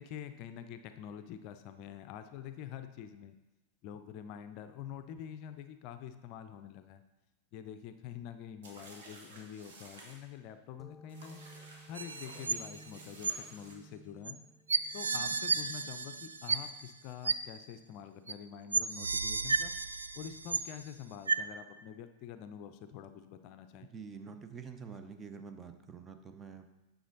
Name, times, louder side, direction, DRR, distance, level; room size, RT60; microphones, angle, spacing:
voice 1, 0.0-3.3 3.8-7.0 7.5-11.4 11.9-14.4 14.9-19.7 20.1-23.9, left 9 dB, 40° left, 9 dB, 0.5 m, -46 dB
sound 1, 8.6-10.2 11.1-13.7, right 2 dB, 60° right, 1.6 m, -54 dB
sound 2, 10.8-18.1, right 1 dB, 10° left, 0.7 m, -58 dB
sound 3, 12.0-12.9 13.2-13.3 14.3-14.4 14.7-16.9 17.3-17.4 18.3-18.4 18.7-20.9 21.3-21.4, right 4 dB, 75° right, 0.3 m, -33 dB
voice 2, 23.9-26.6, right 5 dB, 20° right, 7 dB, 0.8 m, -47 dB
9.4 x 6.3 x 3.9 m, 1.0 s
figure-of-eight pair, 90°, 0 cm